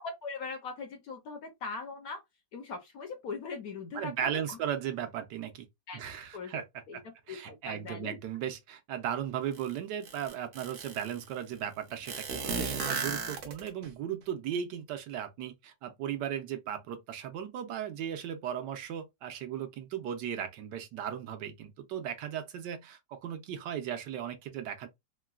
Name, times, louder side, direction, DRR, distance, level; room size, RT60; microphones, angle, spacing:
voice 1, 0.0-2.2 2.5-4.6 5.9-6.0 6.3-7.0 7.3-8.2, left 4 dB, 65° left, 1.0 m, -40 dB
voice 2, 3.9-5.7 5.9-6.6 6.9-7.0 7.3-24.9, right 9 dB, 75° right, 1.2 m, -36 dB
sound 1, 9.5-9.6 10.0-11.2 12.1-13.9, right 5 dB, 60° right, 0.8 m, -35 dB
3.8 x 2.1 x 2.3 m
omnidirectional pair, 1.9 m